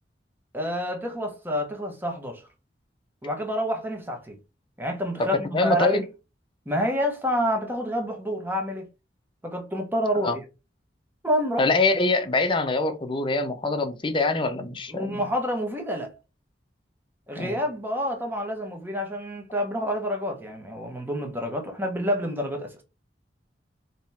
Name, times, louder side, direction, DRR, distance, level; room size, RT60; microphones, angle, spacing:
voice 1, 0.5-2.4 3.2-4.4 4.8-5.4 5.6-6.0 6.7-8.9 9.4-10.3 11.2-11.7 14.9-16.1 17.3-22.7, equal, 10° right, 1.0 m, -28 dB
voice 2, 5.2-6.0 10.1-10.4 11.6-15.3 17.4-17.6, left 3 dB, 25° left, 0.6 m, -24 dB
3.6 x 2.9 x 4.2 m
head